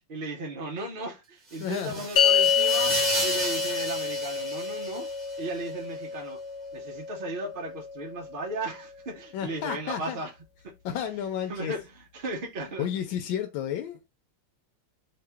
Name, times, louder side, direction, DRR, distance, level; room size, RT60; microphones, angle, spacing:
voice 1, 0.1-3.0 3.2-5.1 5.4-6.4 6.7-10.3 10.6-10.8 11.5-11.8 12.1-12.9, right 2 dB, 85° right, 0.4 m, -36 dB
sound 1, 1.5-5.4, right 2 dB, 30° right, 0.9 m, -33 dB
voice 2, 1.6-2.1 2.9-3.1 9.3-10.2 10.8-11.7 12.8-14.1, left 9 dB, 90° left, 1.3 m, -32 dB
sound 2, 2.2-8.7, left 7 dB, 65° left, 1.1 m, -28 dB
3.1 x 2.9 x 3.3 m
omnidirectional pair, 2.0 m